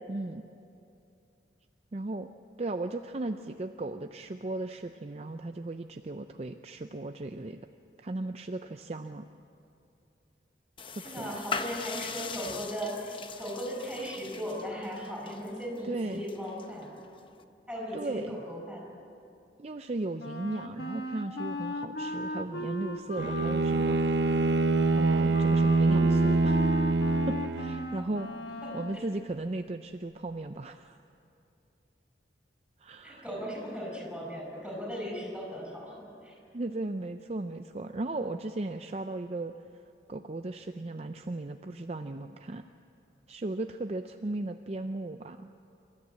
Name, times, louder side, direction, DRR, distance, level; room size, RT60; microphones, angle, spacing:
voice 1, 0.1-0.4 1.9-2.3 2.6-7.6 8.0-9.3 10.9-11.4 15.8-16.3 17.9-18.4 19.6-24.3 24.9-26.8 27.3-28.3 28.7-31.0 32.8-33.3 36.5-39.5 40.1-42.6 43.3-45.5, right 2 dB, 35° right, 7 dB, 0.5 m, -36 dB
sound 1, 10.8-17.4, left 5 dB, 30° left, 0.7 m, -41 dB
voice 2, 11.0-16.9 17.7-18.9 28.6-29.1 33.0-36.3, equal, 5° right, -1 dB, 5.4 m, -37 dB
Wind instrument woodwind instrument, 20.2-29.0, left 1 dB, 60° left, 1.4 m, -38 dB
Bowed string instrument, 23.2-28.0, right 3 dB, 75° right, 0.7 m, -25 dB
26.5 x 13.0 x 8.6 m, 2.5 s
head